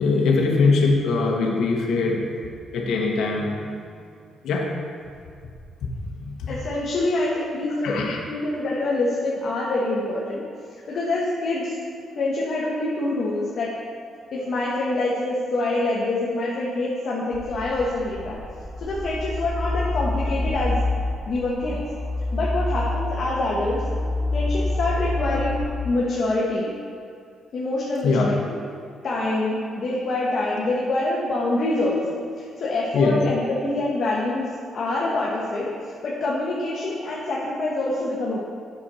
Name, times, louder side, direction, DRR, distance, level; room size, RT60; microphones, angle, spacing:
voice 1, 0.0-2.3 2.7-3.8 4.4-4.8 5.8-6.5 7.8-8.2 28.0-28.3 32.9-33.2, left 3 dB, 75° left, -1 dB, 1.2 m, -22 dB
voice 2, 6.5-10.4 10.9-11.8 12.2-13.7 14.3-18.4 18.8-20.8 21.3-21.8 22.3-23.8 24.3-26.7 27.5-28.5 29.0-35.7 36.0-38.4, left 2 dB, 55° left, -5 dB, 1.3 m, -25 dB
sound 1, 17.3-25.7, left 2 dB, 45° right, 2.2 m, -27 dB
8.3 x 6.2 x 4.3 m, 2.3 s
cardioid pair, 90°, 0 cm